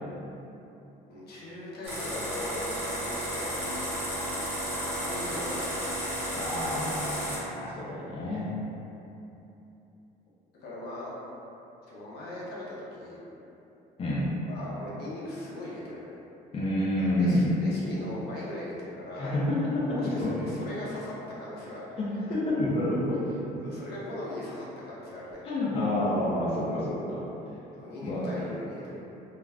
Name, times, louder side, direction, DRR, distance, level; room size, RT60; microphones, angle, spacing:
voice 1, 1.1-2.7 3.0-3.6 4.7-5.8 10.6-11.1 11.9-13.2 14.5-16.2 17.0-19.4 19.9-21.1 21.4-21.8 23.6-25.5 27.8-29.0, left 1 dB, 70° left, -7 dB, 0.7 m, -39 dB
sound 1, 1.8-7.4, equal, 10° right, 0.9 m, -32 dB
voice 2, 6.4-8.5 14.0-14.3 16.5-17.5 19.1-20.5 22.0-23.2 23.5-23.6 25.4-27.2 28.0-28.4, left 1 dB, 35° left, -7 dB, 0.6 m, -28 dB
2.4 x 2.1 x 3.3 m, 3.0 s
cardioid pair, 110°, 17 cm